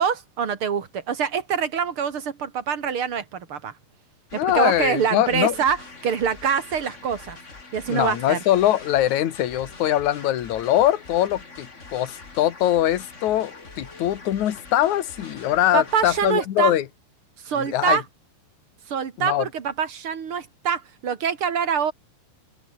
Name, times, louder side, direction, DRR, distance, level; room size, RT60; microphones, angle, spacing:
voice 1, 0.0-3.7 4.3-5.8 6.0-7.4 7.7-8.4 15.7-16.7 17.4-18.0 18.9-21.9, right 7 dB, 40° right, 2.3 m, -25 dB
voice 2, 4.3-5.5 7.9-16.8 17.6-18.0 19.2-19.5, left 12 dB, 55° left, 2.6 m, -22 dB
sound 1, 4.3-16.3, left 3 dB, 20° left, 2.4 m, -43 dB
omnidirectional pair, 4.6 m